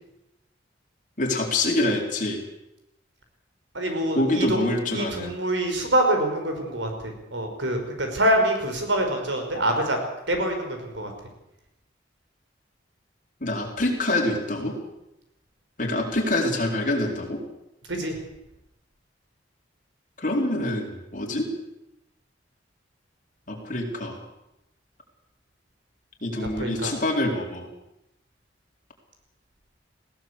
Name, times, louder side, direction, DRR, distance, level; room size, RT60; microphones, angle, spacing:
voice 1, 1.2-2.4 4.1-5.3 13.4-14.8 15.8-17.4 20.2-21.5 23.5-24.2 26.2-27.7, left 1 dB, 45° left, 1 dB, 4.3 m, -25 dB
voice 2, 3.8-10.0 10.3-11.1 17.9-18.2 26.6-26.9, right 1 dB, 80° right, 4 dB, 5.2 m, -25 dB
20.0 x 17.0 x 8.2 m, 0.88 s
head